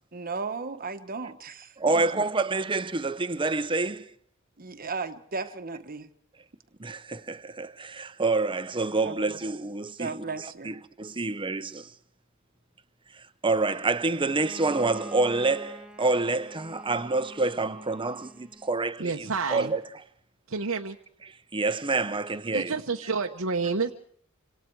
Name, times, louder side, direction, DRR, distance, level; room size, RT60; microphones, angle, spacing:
voice 1, 0.1-2.2 4.6-6.1 9.0-9.2 10.0-10.8, right 4 dB, 45° right, 1.3 m, -35 dB
voice 2, 1.8-4.1 6.8-11.9 13.4-19.8 21.5-22.7, right 3 dB, 25° right, 0.9 m, -27 dB
Bowed string instrument, 14.2-18.9, right 1 dB, 5° right, 1.1 m, -46 dB
voice 3, 19.0-19.7 20.5-21.0 22.5-23.9, right 4 dB, 75° right, 1.0 m, -29 dB
26.5 x 26.0 x 4.7 m
head